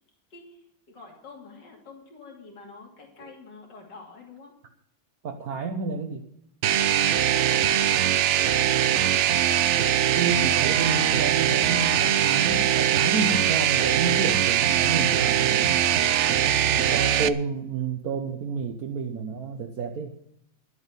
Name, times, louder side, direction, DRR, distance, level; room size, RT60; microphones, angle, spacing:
voice 1, 0.3-4.5 7.0-9.2 16.8-17.1, left 4 dB, 75° left, -1 dB, 3.3 m, -47 dB
voice 2, 5.2-6.2 10.1-15.8 16.7-20.1, right 4 dB, 60° right, 3 dB, 1.4 m, -30 dB
sound 1, 6.6-17.3, right 10 dB, 80° right, 0.6 m, -22 dB
11.5 x 8.1 x 8.1 m, 0.77 s
omnidirectional pair, 1.9 m